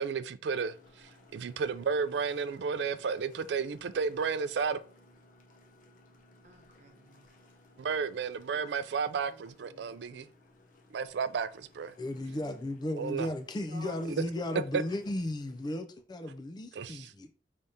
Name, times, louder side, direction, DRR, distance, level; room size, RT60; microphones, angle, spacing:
voice 1, 0.0-4.8 7.8-10.3 10.9-11.9 13.0-13.3 14.7-14.8 16.8-16.9, right 5 dB, 70° right, 0.3 m, -32 dB
sound 1, 0.6-15.8, left 1 dB, 45° left, 0.7 m, -60 dB
voice 2, 6.4-7.3 8.5-10.0 12.2-13.2 13.7-14.8, right 2 dB, 40° right, 0.8 m, -55 dB
voice 3, 12.0-17.0, left 1 dB, 25° left, 0.3 m, -35 dB
4.9 x 3.3 x 2.7 m
head